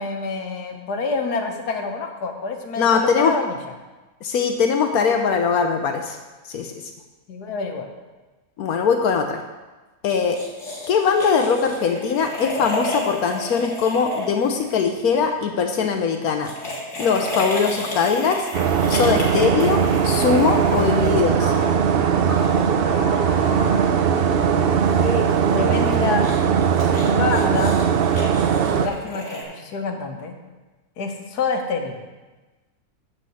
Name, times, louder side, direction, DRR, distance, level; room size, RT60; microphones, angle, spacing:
voice 1, 0.0-3.6 7.3-7.9 22.6-24.0 25.0-26.2 27.1-27.8 28.7-30.4 31.0-32.0, left 4 dB, 90° left, 4 dB, 1.6 m, -27 dB
voice 2, 2.8-3.3 4.2-6.2 6.5-6.7 8.6-9.4 10.0-10.4 10.9-16.5 17.0-18.5 18.9-21.5, left 6 dB, 75° left, 5 dB, 1.2 m, -21 dB
sound 1, 10.1-15.2 16.3-21.5 24.6-29.4, left 1 dB, 50° left, 2.1 m, -33 dB
sound 2, 18.5-28.9, right 7 dB, 75° right, 0.5 m, -19 dB
sound 3, 20.4-21.0 21.3-22.8 23.2-25.1 25.7-25.9 26.7-26.8, equal, 45° right, 3.2 m, -37 dB
7.0 x 6.1 x 7.7 m, 1.2 s
omnidirectional pair, 1.6 m